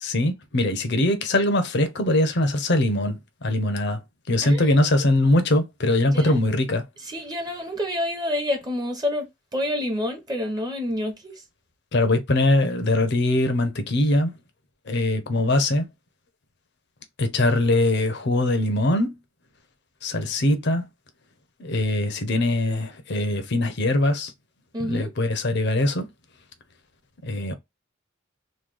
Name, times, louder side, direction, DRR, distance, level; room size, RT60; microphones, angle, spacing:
voice 1, 0.0-4.0 4.3-6.8 11.9-14.3 14.9-15.8 17.2-19.1 20.0-20.9 21.6-24.3 24.9-26.1 27.2-27.5, left 1 dB, 60° left, 0.7 m, -22 dB
voice 2, 4.4-4.8 6.1-6.4 7.0-9.3 9.5-11.4 24.7-25.1, left 1 dB, 20° right, 0.9 m, -28 dB
3.1 x 2.2 x 3.6 m
head